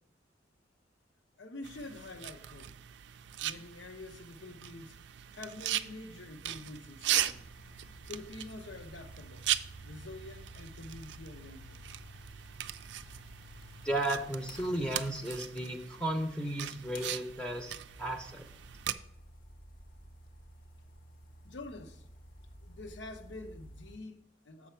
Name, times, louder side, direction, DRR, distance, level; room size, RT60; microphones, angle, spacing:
voice 1, 1.4-2.7 3.4-5.0 5.3-7.5 8.1-9.5 9.8-11.8 21.4-22.1 22.6-24.7, left 2 dB, 75° left, 0.8 m, -47 dB
sound 1, 1.6-18.9, right 12 dB, 70° right, 0.4 m, -39 dB
sound 2, 7.2-15.8 16.9-24.0, equal, 50° left, 0.9 m, -53 dB
voice 2, 13.8-17.7 18.0-18.4, right 1 dB, 5° left, 0.6 m, -34 dB
7.3 x 5.8 x 4.4 m
head